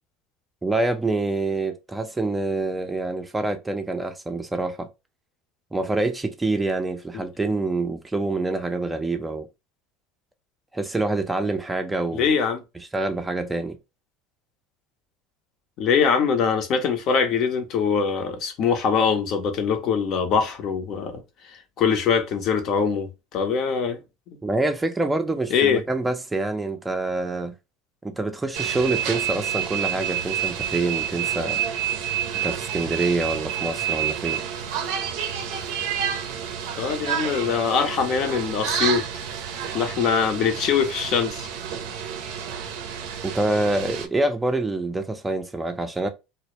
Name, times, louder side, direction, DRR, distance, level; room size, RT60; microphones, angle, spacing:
voice 1, 0.6-4.9 5.7-9.5 10.7-12.3 12.8-13.8 24.4-27.5 28.0-31.6 32.4-34.4 43.2-46.1, right 2 dB, 10° right, 0.4 m, -26 dB
voice 2, 12.1-12.6 15.8-21.2 21.8-24.0 25.5-25.8 36.8-39.0 39.7-41.5, left 6 dB, 55° left, 0.6 m, -23 dB
sound 1, 28.5-44.1, right 8 dB, 70° right, 0.5 m, -29 dB
2.0 x 2.0 x 2.9 m
supercardioid pair, 95°, 0 cm